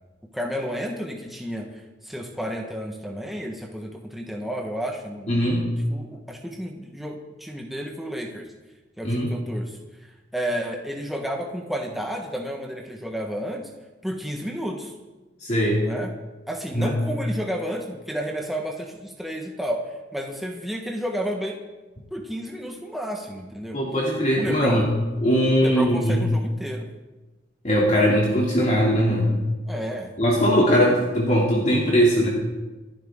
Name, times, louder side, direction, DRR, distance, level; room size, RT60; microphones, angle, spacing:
voice 1, 0.3-1.7 2.0-5.6 5.9-8.5 9.0-13.7 14.0-14.9 15.8-16.1 16.5-21.6 22.1-23.8 24.4-24.8 25.6-26.9 29.7-30.6, equal, ahead, 0 dB, 1.3 m, -31 dB
voice 2, 5.3-5.6 9.0-9.3 15.4-15.8 16.7-16.9 23.7-24.9 25.2-26.2 27.6-29.4 30.2-32.3, equal, 40° left, -4 dB, 2.7 m, -20 dB
27.5 x 10.5 x 3.7 m, 1.2 s
head